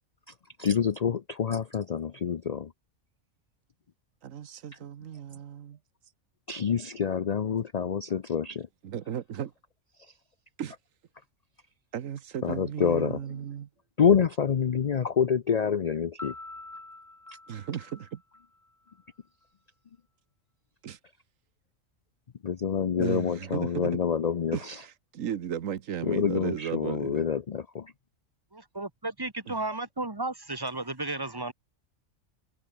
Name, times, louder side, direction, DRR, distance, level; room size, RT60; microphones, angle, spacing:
voice 1, 0.3-2.7 5.3-5.4 6.5-8.7 10.0-10.1 12.4-13.5 14.0-16.3 17.3-17.4 22.4-24.8 26.0-27.9, left 7 dB, 50° left, 0.5 m, -27 dB
voice 2, 4.2-5.8 8.8-9.5 10.6-10.7 11.9-13.7 17.5-18.2 20.8-21.0 23.0-23.9 24.5-24.7 25.1-27.3 29.5-29.6, right 9 dB, 85° right, 1.3 m, -35 dB
Piano, 16.2-19.0, left 2 dB, 15° left, 1.1 m, -45 dB
voice 3, 28.5-31.5, right 2 dB, 15° right, 1.7 m, -34 dB
omnidirectional pair, 1.3 m